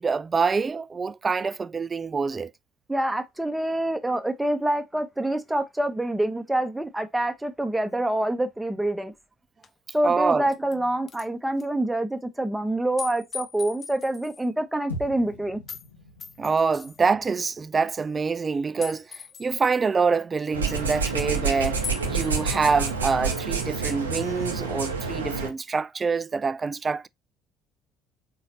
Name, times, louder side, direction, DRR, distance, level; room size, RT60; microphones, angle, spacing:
voice 1, 0.0-2.5 10.0-10.5 16.4-27.1, right 5 dB, 30° right, 0.3 m, -26 dB
voice 2, 2.9-9.1 9.9-15.6, right 1 dB, 10° right, 0.8 m, -26 dB
sound 1, 9.6-9.7 10.3-10.7 11.1-11.3 11.6-11.7 13.0-14.5 15.7-15.9 16.2-17.1 18.8-19.9 21.8-22.4, left 7 dB, 40° left, 0.5 m, -39 dB
sound 2, 14.9-19.2, left 1 dB, 90° left, 0.9 m, -43 dB
sound 3, 20.5-25.5, right 4 dB, 85° right, 0.7 m, -28 dB
4.1 x 3.9 x 2.8 m
figure-of-eight pair, 55°, 0 cm